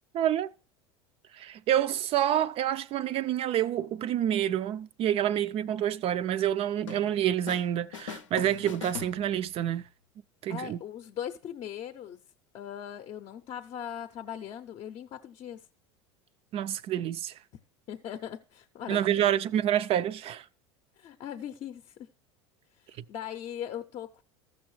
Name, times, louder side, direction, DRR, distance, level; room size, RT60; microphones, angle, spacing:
voice 1, 0.1-0.5 1.3-9.8 10.4-10.8 16.5-17.3 18.9-20.4, right 11 dB, 40° right, 0.4 m, -28 dB
sound 1, 6.9-7.7 7.9-9.7, left 8 dB, 80° left, 0.6 m, -42 dB
voice 2, 10.5-12.2 12.5-15.6 17.9-19.4 21.0-22.1 22.7-24.2, left 9 dB, 40° left, 0.6 m, -40 dB
14.5 x 6.2 x 3.1 m
hypercardioid pair, 80°, 16 cm